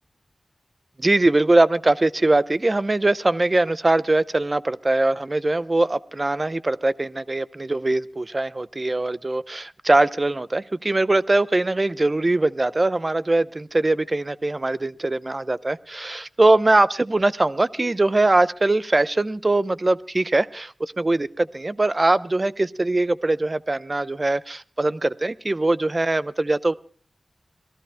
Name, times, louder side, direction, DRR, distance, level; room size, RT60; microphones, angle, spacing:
voice 1, 1.0-26.7, right 2 dB, 30° right, 14 dB, 0.7 m, -21 dB
27.0 x 18.5 x 2.2 m, 0.43 s
wide cardioid pair, 95°, 0 cm